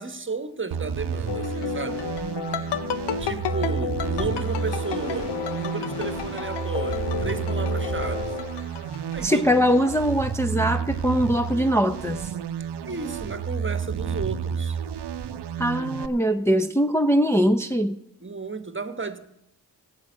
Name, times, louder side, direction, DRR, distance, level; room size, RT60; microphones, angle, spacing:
voice 1, 0.0-2.0 3.2-8.3 9.1-9.7 12.9-14.8 18.2-19.2, right 4 dB, 30° right, 1.1 m, -33 dB
sound 1, 0.7-16.1, right 7 dB, 85° right, 0.7 m, -31 dB
sound 2, 1.3-9.6 9.9-10.4, left 7 dB, 90° left, 0.7 m, -31 dB
voice 2, 9.2-12.2 15.6-18.0, equal, 5° left, 0.7 m, -22 dB
12.5 x 7.6 x 8.5 m
cardioid pair, 40°, 40 cm